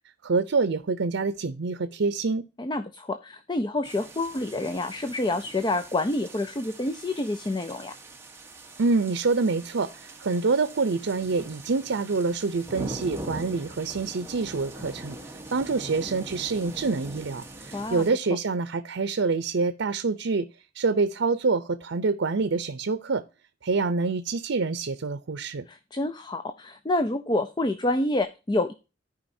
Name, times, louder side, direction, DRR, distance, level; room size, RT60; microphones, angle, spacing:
voice 1, 0.2-2.5 8.8-15.2 15.5-20.5 20.7-23.2 23.6-25.6, right 4 dB, 85° right, 0.6 m, -26 dB
voice 2, 2.6-7.9 17.7-18.0 25.7-28.7, left 2 dB, 25° left, 0.5 m, -28 dB
sound 1, 3.8-18.1, right 1 dB, 15° right, 1.1 m, -42 dB
14.5 x 5.0 x 2.7 m
head